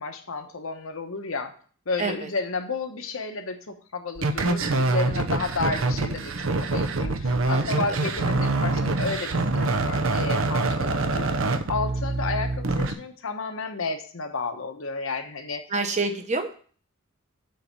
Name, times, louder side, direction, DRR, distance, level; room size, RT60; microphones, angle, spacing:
voice 1, 0.0-1.5 1.9-6.3 6.6-11.4 11.7-15.6, left 3 dB, 70° left, 6 dB, 1.0 m, -32 dB
voice 2, 2.0-2.3 5.1-5.4 7.5-7.8 15.7-16.5, right 3 dB, 35° right, 6 dB, 1.0 m, -28 dB
sound 1, 4.2-12.9, right 2 dB, 70° right, 0.8 m, -25 dB
7.7 x 4.1 x 6.8 m, 0.44 s
head